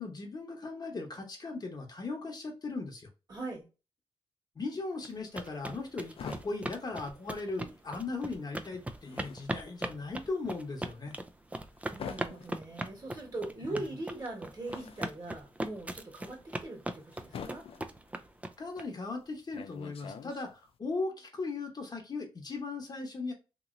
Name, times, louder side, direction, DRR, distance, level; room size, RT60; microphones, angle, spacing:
voice 1, 0.0-3.1 4.5-11.2 13.6-13.8 18.6-23.3, left 3 dB, 40° left, 0.9 m, -38 dB
voice 2, 3.3-3.7 11.9-17.6, right 2 dB, 40° right, 1.6 m, -41 dB
sound 1, 5.0-18.8, right 1 dB, 15° right, 0.4 m, -39 dB
sound 2, 5.3-7.9 8.1-20.8, left 7 dB, 60° left, 0.4 m, -48 dB
3.0 x 2.7 x 2.5 m
cardioid pair, 75°, 11 cm